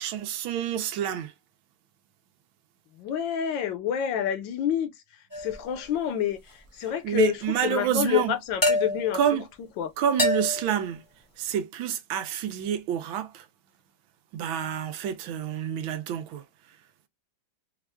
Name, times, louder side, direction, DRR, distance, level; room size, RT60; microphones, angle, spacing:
voice 1, 0.0-1.3 7.0-8.3 9.1-9.5 10.0-11.0 11.4-13.5 14.3-16.4, right 9 dB, 80° right, 1.5 m, -28 dB
voice 2, 3.0-4.9 5.4-7.4 7.6-9.2 9.8-9.9, left 10 dB, 75° left, 1.3 m, -28 dB
sound 1, 5.3-5.7 8.6-9.2 10.2-10.8, left 1 dB, 15° left, 0.8 m, -26 dB
4.4 x 2.4 x 3.4 m
omnidirectional pair, 2.2 m